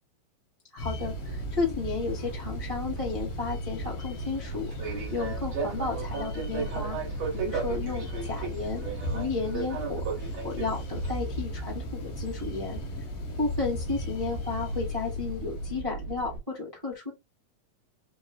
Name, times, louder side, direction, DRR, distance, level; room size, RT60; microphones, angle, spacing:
voice 1, 0.7-7.0 7.3-8.8 9.1-10.0 10.4-12.8 13.4-17.1, left 4 dB, 10° right, 1.1 m, -33 dB
sound 1, 0.8-15.8, left 1 dB, 75° left, 2.7 m, -36 dB
Fixed-wing aircraft airplane, 1.0-16.4, right 5 dB, 50° right, 1.8 m, -37 dB
5.2 x 2.5 x 2.3 m
omnidirectional pair, 3.9 m